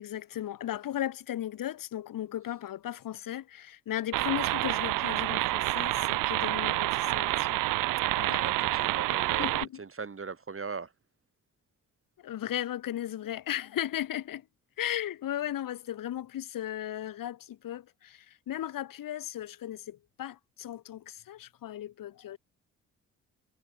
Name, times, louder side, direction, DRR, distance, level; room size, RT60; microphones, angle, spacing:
voice 1, 0.0-7.6 8.2-8.4 9.4-9.8 12.2-14.4 14.8-22.4, left 12 dB, 65° left, 2.3 m, -36 dB
sound 1, 4.1-9.7, right 18 dB, 60° right, 0.5 m, -28 dB
voice 2, 8.4-10.9, right 5 dB, 35° right, 5.5 m, -39 dB
hypercardioid pair, 45°, 36 cm